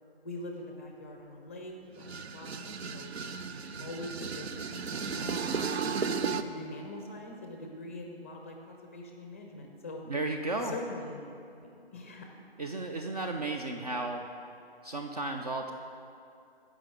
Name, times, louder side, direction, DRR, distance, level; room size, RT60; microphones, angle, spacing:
voice 1, 0.2-3.1 3.8-4.5 4.7-5.7 6.3-10.0 10.6-12.3, left 2 dB, 15° left, 1 dB, 0.5 m, -43 dB
sound 1, 2.0-6.4, right 5 dB, 80° right, 0.6 m, -34 dB
voice 2, 10.1-10.7 12.6-14.3 14.8-15.7, right 2 dB, 40° right, 3 dB, 0.5 m, -34 dB
15.0 x 5.1 x 4.9 m, 2.6 s
figure-of-eight pair, 155°, 31 cm